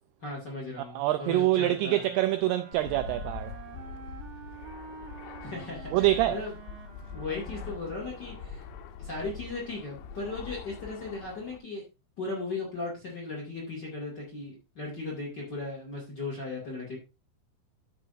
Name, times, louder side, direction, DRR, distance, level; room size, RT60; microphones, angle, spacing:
voice 1, 0.2-2.0 5.4-6.5 7.1-8.6 9.0-11.8 12.2-17.0, left 3 dB, 35° left, 1.8 m, -37 dB
voice 2, 0.9-3.5 5.9-6.4, right 15 dB, 90° right, 2.3 m, -25 dB
Wind instrument woodwind instrument, 1.5-8.8, right 8 dB, 70° right, 2.1 m, -48 dB
Fixed-wing aircraft airplane, 2.7-11.6, left 6 dB, 80° left, 3.0 m, -43 dB
13.0 x 6.1 x 2.6 m
omnidirectional pair, 5.2 m